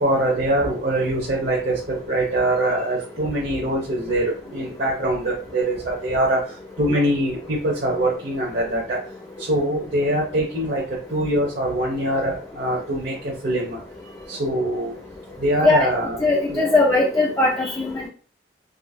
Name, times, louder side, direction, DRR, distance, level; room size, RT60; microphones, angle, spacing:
voice 1, 0.0-6.4 6.8-9.0 9.5-10.8 11.1-13.1 13.4-13.8 14.3-14.9 15.4-16.2 16.5-16.7, right 1 dB, 50° right, -4 dB, 0.8 m, -23 dB
voice 2, 16.2-18.1, left 2 dB, 15° left, -3 dB, 0.4 m, -19 dB
3.7 x 2.7 x 2.7 m, 0.39 s
head